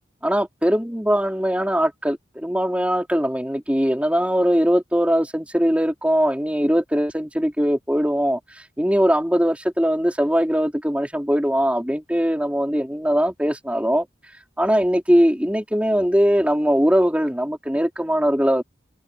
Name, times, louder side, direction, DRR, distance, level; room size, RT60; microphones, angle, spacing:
voice 1, 0.2-8.4 8.8-14.1 14.6-18.6, equal, 5° right, 4.2 m, -21 dB
head